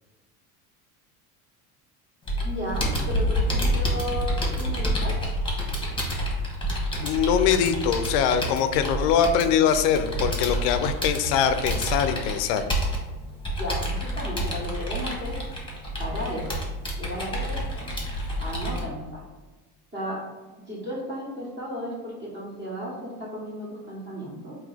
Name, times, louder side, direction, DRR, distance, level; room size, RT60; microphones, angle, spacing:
Computer keyboard, 2.3-18.8, equal, 10° left, 1.2 m, -28 dB
voice 1, 2.4-5.2 13.6-15.3 16.0-16.5 17.0-18.0 18.4-19.2 19.9-20.2 20.7-24.6, equal, 25° right, -5 dB, 1.5 m, -34 dB
voice 2, 7.0-12.6, left 8 dB, 65° left, 10 dB, 0.6 m, -23 dB
3.6 x 2.8 x 3.5 m, 1.2 s
hypercardioid pair, 80°, 45 cm